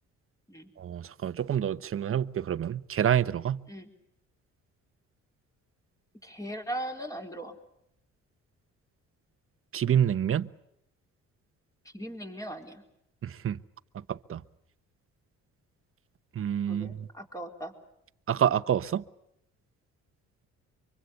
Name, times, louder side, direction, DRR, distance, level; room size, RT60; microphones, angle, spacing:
voice 1, 0.8-3.6 9.7-10.5 13.2-13.6 14.1-14.4 16.3-17.1 18.3-19.0, right 9 dB, 45° right, 1.0 m, -27 dB
voice 2, 6.2-7.6 11.8-12.8 16.7-17.7, right 1 dB, 10° left, 4.3 m, -39 dB
24.5 x 24.5 x 8.3 m
cardioid pair, 90°, 30 cm